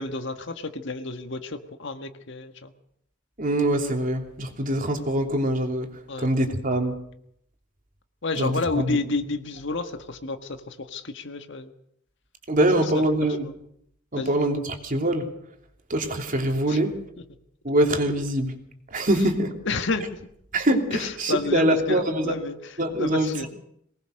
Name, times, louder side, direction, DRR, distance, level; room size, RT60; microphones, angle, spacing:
voice 1, 0.0-2.7 6.1-6.3 8.2-11.7 13.4-13.5 14.1-14.4 16.7-16.8 19.6-20.2 20.9-22.6 23.0-23.5, left 3 dB, 65° left, 8 dB, 1.6 m, -30 dB
voice 2, 3.4-7.0 8.4-9.0 12.5-13.5 14.1-15.3 15.9-17.0 17.6-18.6 18.9-19.5 20.5-22.3 22.8-23.5, right 1 dB, 45° right, 3 dB, 3.0 m, -24 dB
23.0 x 19.5 x 6.5 m, 0.72 s
head